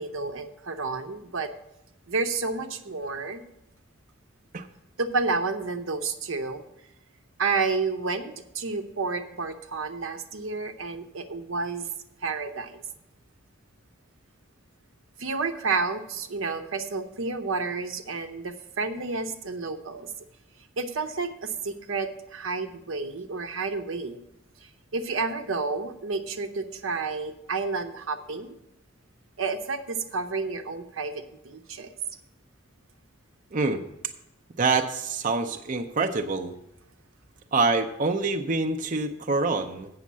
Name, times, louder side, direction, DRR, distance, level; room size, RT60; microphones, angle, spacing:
voice 1, 0.0-1.5 2.1-3.4 5.0-6.6 7.4-11.9 12.2-12.8 15.2-20.1 20.8-24.2 24.9-28.5 29.4-31.9, right 4 dB, 85° right, 6 dB, 0.9 m, -30 dB
voice 2, 33.5-33.8 34.6-36.5 37.5-39.9, right 3 dB, 40° right, 5 dB, 0.6 m, -26 dB
8.3 x 6.4 x 7.4 m, 0.84 s
head